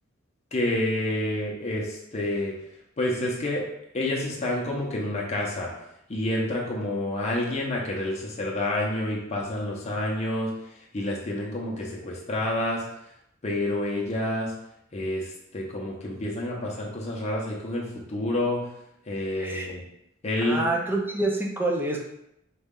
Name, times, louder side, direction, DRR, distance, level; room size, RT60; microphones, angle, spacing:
voice 1, 0.5-2.5 3.0-3.6 3.9-5.7 6.1-10.5 10.9-12.8 13.4-14.5 14.9-18.6 19.1-19.8 20.2-20.6, left 1 dB, 35° left, -3 dB, 0.7 m, -28 dB
voice 2, 19.4-19.7 20.4-22.0, right 2 dB, 10° right, -1 dB, 0.6 m, -27 dB
4.0 x 2.3 x 3.6 m, 0.79 s
head